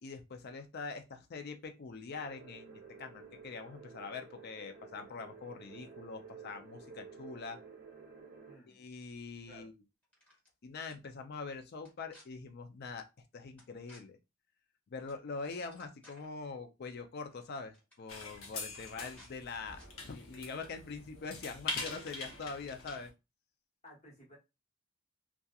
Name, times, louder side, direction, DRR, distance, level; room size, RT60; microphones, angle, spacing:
voice 1, 0.0-7.6 8.7-9.7 10.6-13.0 13.3-14.2 14.9-23.1, left 4 dB, 50° left, 6 dB, 0.5 m, -44 dB
sound 1, 2.1-8.6, right 4 dB, 50° right, 0.6 m, -52 dB
voice 2, 8.5-8.8 9.5-9.7 23.8-24.4, left 1 dB, 35° left, -4 dB, 1.2 m, -55 dB
sound 2, 10.0-10.5 10.9-11.0 11.8-12.2 13.6-14.0 15.1-15.2 15.5-16.3 17.3-17.4 17.7-18.0 18.8-19.3 19.7-19.9, left 1 dB, 5° left, 1.1 m, -60 dB
sound 3, 18.1-23.1, left 3 dB, 85° left, 0.8 m, -43 dB
2.7 x 2.3 x 2.3 m, 0.25 s
head